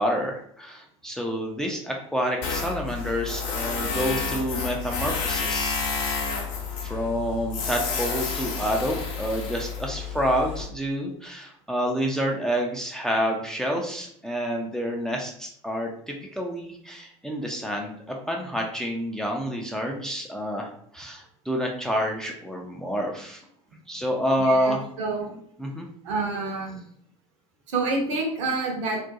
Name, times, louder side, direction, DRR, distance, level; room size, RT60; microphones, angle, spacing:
voice 1, 0.0-5.8 6.2-6.5 6.8-23.4 23.9-24.9 25.6-25.9, equal, 5° left, 0 dB, 0.4 m, -28 dB
Tools, 2.4-10.7, left 5 dB, 60° left, 0.6 m, -30 dB
voice 2, 24.4-25.3 26.0-26.8 27.7-29.0, right 3 dB, 65° right, 1 dB, 0.7 m, -28 dB
2.4 x 2.1 x 2.7 m, 0.66 s
figure-of-eight pair, 70°, 17 cm